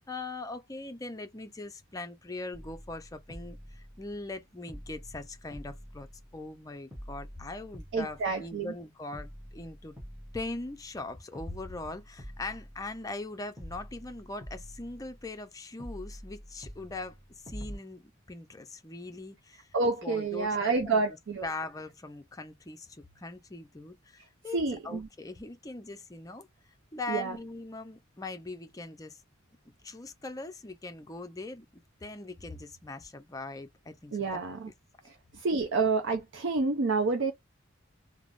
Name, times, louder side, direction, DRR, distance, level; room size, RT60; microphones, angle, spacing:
voice 1, 0.0-6.1 6.3-10.0 10.3-17.2 17.4-19.7 20.0-21.0 21.4-24.6 24.8-26.5 26.9-29.2 29.8-34.4, left 2 dB, 15° left, 0.5 m, -41 dB
sound 1, 2.5-4.4 4.7-6.6 6.9-8.8 9.1-11.1 11.4-13.3 13.6-15.5 15.8-17.8, equal, 5° right, 1.0 m, -47 dB
voice 2, 7.9-8.7 19.7-21.5 24.5-25.1 27.1-27.4 34.1-34.7 35.0-37.3, right 4 dB, 65° right, 0.5 m, -29 dB
3.3 x 2.0 x 2.4 m
head